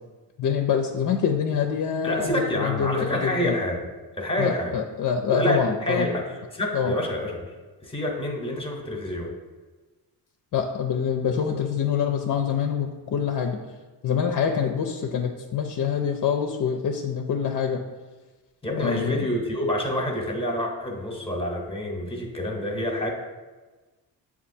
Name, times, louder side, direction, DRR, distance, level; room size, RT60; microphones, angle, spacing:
voice 1, 0.4-3.5 4.4-6.1 6.7-6.9 10.5-13.6 14.0-17.8 18.8-19.3, left 7 dB, 50° left, 3 dB, 0.4 m, -25 dB
voice 2, 2.0-3.8 4.2-4.8 5.3-7.5 7.8-9.3 18.6-23.1, left 1 dB, 15° left, 1 dB, 0.9 m, -27 dB
7.0 x 2.4 x 2.6 m, 1.3 s
cardioid pair, 80°, 43 cm